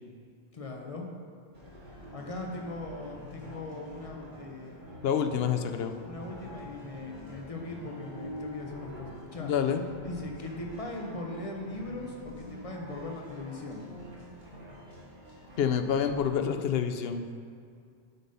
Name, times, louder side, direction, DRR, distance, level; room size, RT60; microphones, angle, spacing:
voice 1, 0.5-1.1 2.1-4.9 6.0-9.5 10.0-13.9, left 2 dB, 35° left, 0 dB, 1.0 m, -39 dB
sound 1, 1.5-16.3, equal, 45° right, 2.2 m, -47 dB
voice 2, 5.0-5.9 9.4-9.8 15.6-17.2, left 7 dB, 70° left, 6 dB, 0.8 m, -27 dB
8.1 x 5.2 x 5.4 m, 2.3 s
omnidirectional pair, 1.1 m